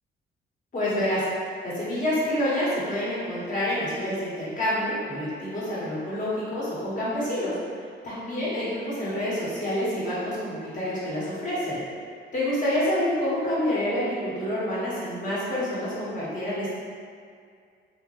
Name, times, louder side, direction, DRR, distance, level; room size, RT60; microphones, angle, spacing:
voice 1, 0.7-1.2 1.6-7.5 8.0-11.8 12.3-16.7, left 1 dB, 40° left, -9 dB, 1.4 m, -27 dB
3.5 x 2.9 x 3.0 m, 2.2 s
cardioid pair, 135°, 21 cm